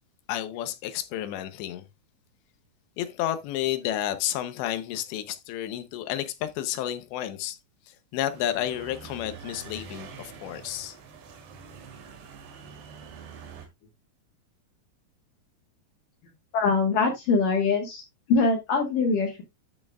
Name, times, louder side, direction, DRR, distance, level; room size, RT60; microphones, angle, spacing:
voice 1, 0.3-1.8 3.0-7.6 8.1-11.0, left 12 dB, 90° left, 3.2 m, -31 dB
sound 1, 8.3-13.7, right 5 dB, 75° right, 3.9 m, -45 dB
voice 2, 16.5-18.0 18.3-19.4, left 4 dB, 60° left, 2.7 m, -23 dB
12.5 x 6.4 x 2.4 m
omnidirectional pair, 4.9 m